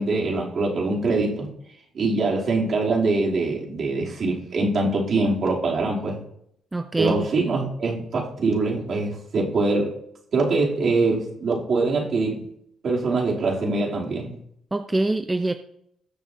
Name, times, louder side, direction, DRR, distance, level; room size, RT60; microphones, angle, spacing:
voice 1, 0.0-1.5 1.9-6.2 7.0-10.0 10.3-12.4 12.8-14.4, right 3 dB, 55° right, -2 dB, 2.9 m, -23 dB
voice 2, 6.7-7.2 14.7-15.5, right 2 dB, 15° right, 7 dB, 0.6 m, -24 dB
19.0 x 6.7 x 2.7 m, 0.72 s
cardioid pair, 100°, 0 cm